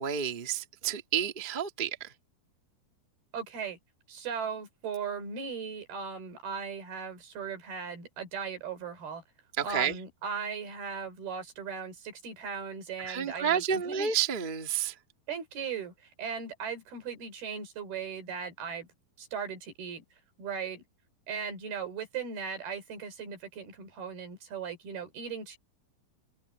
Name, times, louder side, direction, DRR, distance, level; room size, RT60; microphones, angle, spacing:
voice 1, 0.0-2.1 9.6-10.0 13.0-15.0, right 8 dB, 55° right, 0.5 m, -30 dB
voice 2, 3.3-3.8 4.1-9.2 9.6-14.1 15.3-15.9 16.2-18.9 19.2-20.0 20.4-20.8 21.3-25.6, right 6 dB, 75° right, 6.0 m, -38 dB
open air
omnidirectional pair, 4.5 m